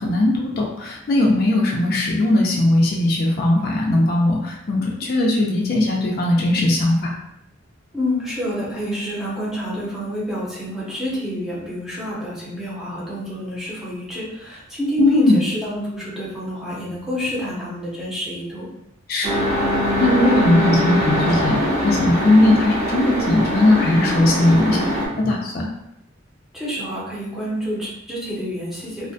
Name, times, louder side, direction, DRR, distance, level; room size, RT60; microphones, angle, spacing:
voice 1, 0.0-7.1 15.0-15.4 19.1-19.3 20.0-21.6 21.8-24.8 25.2-25.6, left 1 dB, 50° left, -1 dB, 0.4 m, -18 dB
voice 2, 7.9-18.7 26.5-29.1, equal, ahead, -7 dB, 0.6 m, -28 dB
sound 1, 19.2-25.1, equal, 35° right, 0.8 m, -22 dB
2.4 x 2.1 x 2.5 m, 0.81 s
head